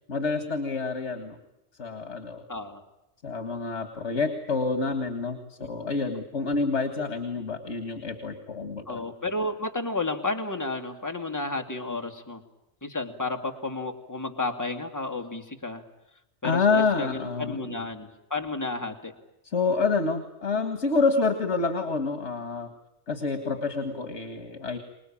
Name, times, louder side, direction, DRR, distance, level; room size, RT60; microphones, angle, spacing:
voice 1, 0.1-1.4 1.8-2.4 3.2-9.0 16.4-17.7 19.5-22.7 23.1-24.8, left 4 dB, 80° left, 8 dB, 2.2 m, -27 dB
voice 2, 2.5-2.8 5.6-5.7 8.9-12.4 12.8-15.8 16.4-19.1, left 2 dB, 15° left, 4 dB, 2.3 m, -32 dB
26.5 x 20.0 x 8.7 m, 0.92 s
omnidirectional pair, 1.2 m